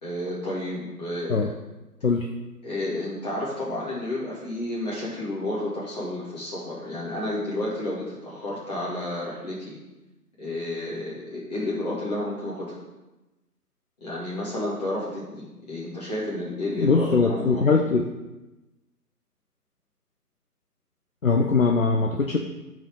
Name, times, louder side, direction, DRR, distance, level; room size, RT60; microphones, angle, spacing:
voice 1, 0.0-1.5 2.6-9.8 10.4-12.8 14.0-17.7, left 1 dB, 25° left, -7 dB, 2.7 m, -31 dB
voice 2, 16.8-18.1 21.2-22.4, left 4 dB, 60° left, 2 dB, 0.8 m, -21 dB
12.5 x 4.9 x 3.9 m, 1.0 s
figure-of-eight pair, 160°, 47 cm